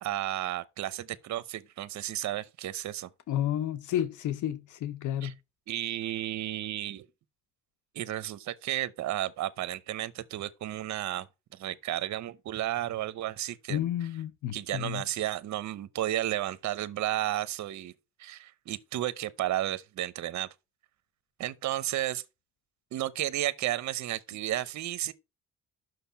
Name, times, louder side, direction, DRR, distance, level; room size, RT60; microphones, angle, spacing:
voice 1, 0.0-3.1 5.2-5.3 5.7-7.1 7.9-11.3 11.5-13.8 14.5-17.9 18.2-20.5 21.4-22.2 22.9-25.1, right 13 dB, 65° right, 0.8 m, -33 dB
voice 2, 3.3-5.3 13.7-15.0, left 11 dB, 75° left, 0.8 m, -31 dB
6.6 x 6.1 x 5.7 m
cardioid pair, 90°, 30 cm